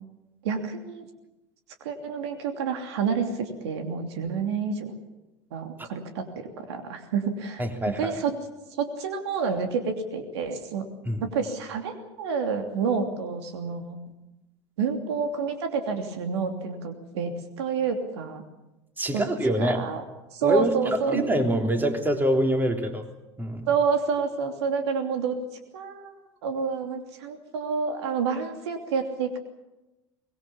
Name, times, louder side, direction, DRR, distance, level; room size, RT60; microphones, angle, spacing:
voice 1, 0.4-1.1 1.8-4.9 5.5-8.4 8.8-10.8 11.2-14.0 14.8-18.4 19.1-19.2 19.6-20.0 20.3-21.2 23.7-25.4 25.7-26.1 26.4-29.4, right 5 dB, 65° right, 5 dB, 2.9 m, -29 dB
voice 2, 7.6-8.2 11.0-11.3 19.0-19.8 20.4-23.0 23.4-23.7, right 1 dB, 15° right, 4 dB, 3.5 m, -25 dB
24.0 x 21.0 x 7.3 m, 0.97 s
figure-of-eight pair, 75°, 15 cm